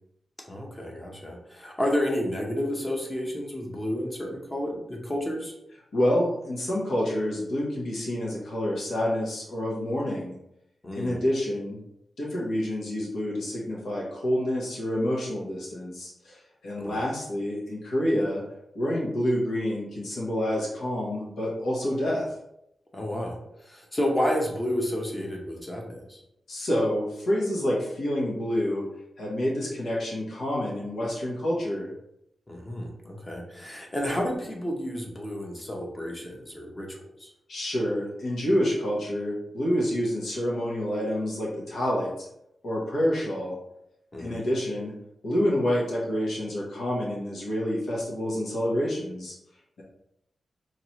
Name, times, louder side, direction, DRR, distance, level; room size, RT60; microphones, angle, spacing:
voice 1, 0.5-5.5 10.8-11.2 16.8-17.0 22.9-23.4 23.6-26.2 32.5-37.3 44.1-44.4, equal, 20° left, 0 dB, 0.8 m, -31 dB
voice 2, 5.9-10.4 10.9-11.8 12.2-18.4 18.7-22.3 26.5-28.8 29.2-31.9 37.5-42.3 42.6-43.6 44.2-44.9 45.2-49.3, equal, 85° left, -5 dB, 1.3 m, -28 dB
4.2 x 2.9 x 3.1 m, 0.81 s
wide cardioid pair, 150°, 0 cm